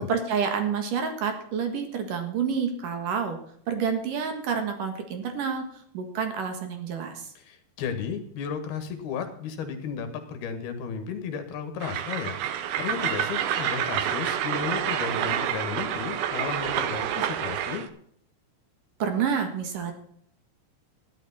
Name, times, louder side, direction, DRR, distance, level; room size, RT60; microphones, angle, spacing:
voice 1, 0.0-3.4 3.7-5.7 5.9-7.3 19.0-19.9, right 6 dB, 55° right, 5 dB, 2.8 m, -28 dB
voice 2, 7.4-12.4 12.8-17.8, left 6 dB, 65° left, 7 dB, 3.3 m, -34 dB
Train, 11.8-17.9, right 10 dB, 75° right, 2.3 m, -28 dB
13.5 x 11.5 x 4.2 m, 0.67 s
omnidirectional pair, 5.2 m